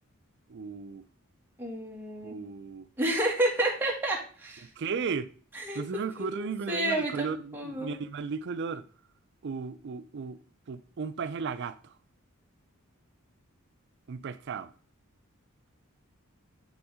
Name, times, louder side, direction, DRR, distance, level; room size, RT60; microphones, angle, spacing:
voice 1, 0.5-1.0 2.2-2.9 4.6-5.3 5.7-8.9 9.4-10.4 10.7-12.0 14.1-14.7, right 5 dB, 55° right, 0.4 m, -35 dB
voice 2, 1.6-2.3 3.0-4.7 5.6-7.3 7.5-7.9, right 1 dB, 10° right, 1.8 m, -30 dB
9.7 x 3.6 x 4.8 m
head